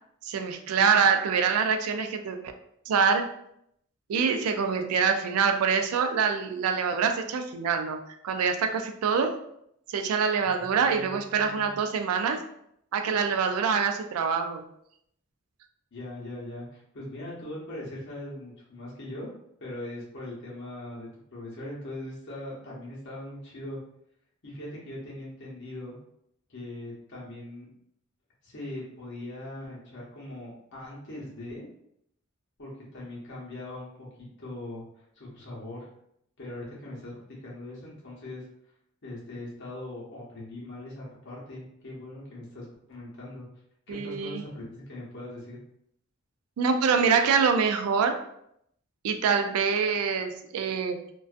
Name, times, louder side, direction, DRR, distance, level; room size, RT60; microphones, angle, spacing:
voice 1, 0.2-2.4 2.9-3.2 4.1-9.4 9.9-12.4 12.9-14.6 43.9-44.4 46.6-48.2 49.0-51.0, right 6 dB, 85° right, 6 dB, 0.3 m, -25 dB
voice 2, 10.6-11.7 15.9-19.3 19.6-23.8 24.4-25.9 26.5-27.7 28.4-31.7 32.6-34.1 34.4-35.9 36.4-38.4 39.0-43.5 43.9-45.6, left 1 dB, 55° left, -6 dB, 0.8 m, -40 dB
2.4 x 2.2 x 2.3 m, 0.74 s
head